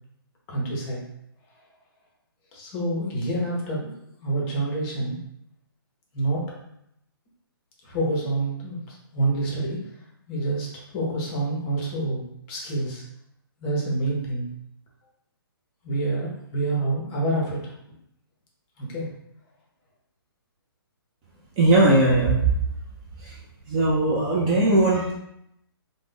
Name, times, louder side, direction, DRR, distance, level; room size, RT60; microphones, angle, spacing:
voice 1, 0.5-1.0 2.5-3.9 4.2-5.2 6.1-6.4 7.8-9.8 10.3-10.7 10.9-12.2 12.5-13.0 13.6-14.5 15.8-17.7 18.8-19.1, right 2 dB, 25° left, -3 dB, 0.7 m, -27 dB
voice 2, 21.6-22.4 23.2-23.3 23.7-25.1, right 2 dB, 20° right, -4 dB, 0.4 m, -19 dB
2.3 x 2.0 x 3.5 m, 0.78 s
hypercardioid pair, 145°, 13 cm